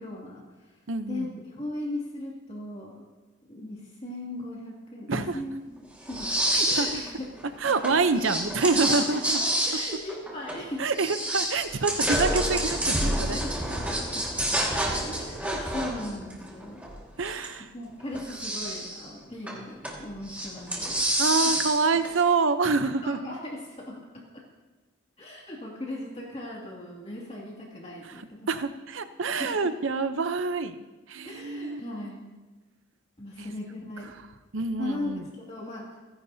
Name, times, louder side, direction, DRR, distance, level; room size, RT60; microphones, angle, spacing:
voice 1, 0.0-0.8 1.1-2.9 3.5-6.3 6.6-7.2 8.9-10.9 13.0-14.2 15.1-16.8 17.7-21.0 21.4-21.7 23.0-24.0 25.2-28.5 29.4-29.7 31.2-32.3 33.2-34.1 34.8-35.8, left 1 dB, 30° left, -4 dB, 2.4 m, -38 dB
voice 2, 0.9-1.3 5.1-5.4 6.5-7.0 7.6-9.4 10.8-13.4 17.2-17.7 21.2-23.3 28.5-30.8 31.1-31.8 33.4-33.5 34.5-35.3, right 4 dB, 75° right, 10 dB, 0.7 m, -26 dB
sound 1, 6.1-7.1 7.4-10.7 11.0-17.5 18.0-19.0 19.5-20.0 20.3-22.1, right 1 dB, 5° right, 1.9 m, -28 dB
29.5 x 10.5 x 2.8 m, 1.2 s
head